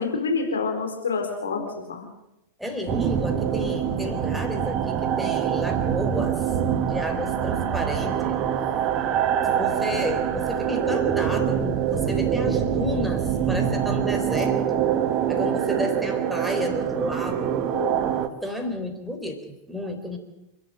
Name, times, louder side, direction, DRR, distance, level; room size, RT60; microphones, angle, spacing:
voice 1, 0.0-2.0 17.7-18.0, left 4 dB, 70° left, 3 dB, 4.2 m, -27 dB
voice 2, 2.6-6.5 6.9-8.5 9.6-14.9 15.3-17.6 18.3-20.2, left 1 dB, ahead, 4 dB, 3.8 m, -31 dB
sound 1, 2.9-18.3, right 9 dB, 35° right, 1.7 m, -25 dB
28.5 x 11.5 x 8.0 m, 0.91 s
figure-of-eight pair, 90°, 0 cm